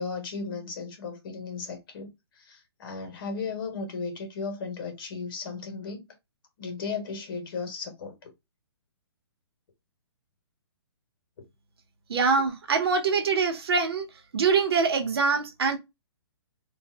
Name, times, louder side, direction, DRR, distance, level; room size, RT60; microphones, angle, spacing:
voice 1, 0.0-2.1 2.3-6.1 6.6-8.3 11.4-11.5, left 4 dB, 55° left, 1.4 m, -35 dB
voice 2, 12.1-14.1 14.3-15.8, right 5 dB, 65° right, 1.1 m, -24 dB
2.8 x 2.5 x 3.5 m
hypercardioid pair, 155°, 14 cm